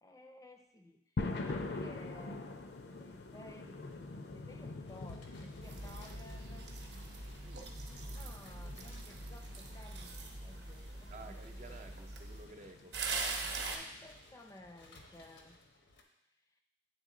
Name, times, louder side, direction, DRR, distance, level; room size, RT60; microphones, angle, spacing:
voice 1, 0.0-2.6 3.0-6.7 7.6-11.4 11.7-11.8 13.1-13.3 13.7-15.6 16.5-16.6, left 1 dB, 20° left, 3 dB, 0.4 m, -56 dB
sound 1, 1.2-14.1, left 3 dB, 65° left, 0.5 m, -45 dB
sound 2, 4.9-16.0, left 2 dB, 85° left, 0.8 m, -62 dB
sound 3, 5.6-12.4 12.9-13.8, right 3 dB, 65° right, 0.8 m, -42 dB
voice 2, 11.1-13.0, right 3 dB, 40° right, 5 dB, 0.4 m, -52 dB
9.2 x 3.6 x 3.7 m, 0.84 s
head